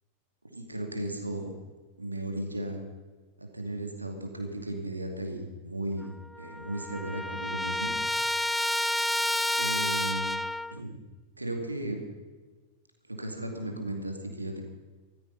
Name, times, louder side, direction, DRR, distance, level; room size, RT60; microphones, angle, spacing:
voice 1, 0.5-1.5 2.0-2.8 3.4-6.1 6.4-7.9 8.7-8.9 9.5-10.3 10.7-10.9 11.4-12.0 13.1-14.6, right 1 dB, 85° right, 4 dB, 2.4 m, -35 dB
Trumpet, 6.0-6.1 6.4-10.8, left 1 dB, 5° left, 0.4 m, -30 dB
14.5 x 14.0 x 5.4 m, 1.3 s
figure-of-eight pair, 90°, 0 cm